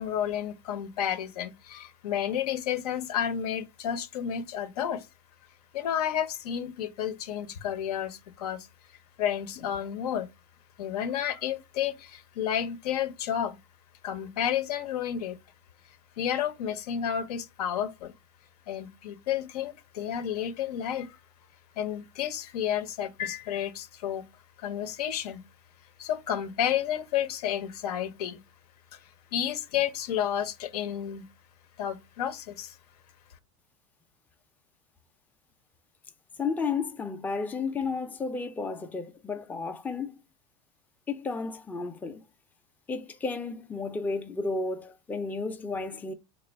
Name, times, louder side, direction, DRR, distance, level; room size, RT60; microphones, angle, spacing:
voice 1, 0.0-5.1 5.7-8.7 9.2-10.3 10.8-13.6 14.0-15.4 16.2-18.1 18.7-21.2 21.8-24.3 24.6-25.4 26.0-28.4 28.9-29.0 29.3-31.3 31.8-32.8, left 9 dB, 85° left, 0.6 m, -31 dB
voice 2, 36.4-40.1 41.1-42.2 42.9-46.1, left 4 dB, 10° left, 0.4 m, -32 dB
3.2 x 2.4 x 4.2 m
supercardioid pair, 125°, 19 cm